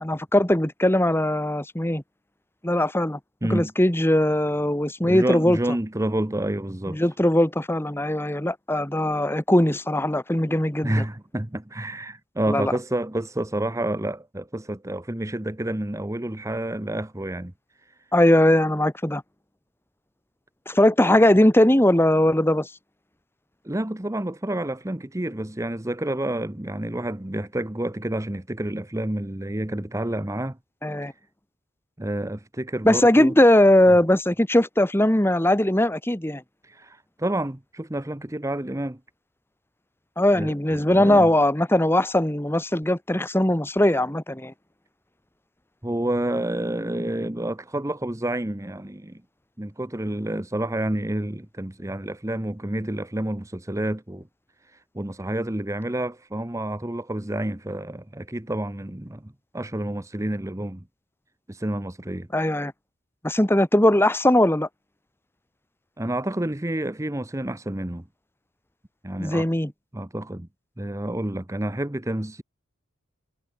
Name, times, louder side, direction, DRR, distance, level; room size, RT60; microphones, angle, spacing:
voice 1, 0.0-2.0 2.6-3.2 3.5-5.6 6.9-11.0 12.5-12.7 18.1-19.2 20.7-22.7 30.8-31.1 32.8-36.4 40.2-44.5 62.3-62.7 63.2-64.7 69.2-69.7, left 1 dB, 10° left, 1.5 m, -20 dB
voice 2, 3.4-3.7 5.0-7.0 10.8-17.5 23.6-30.6 31.0-31.1 32.0-33.3 36.6-39.0 40.3-41.3 45.8-49.2 49.6-54.3 54.7-60.8 61.5-62.3 66.0-68.0 69.0-69.5 69.9-70.5 70.8-72.4, right 1 dB, 15° right, 0.9 m, -29 dB
head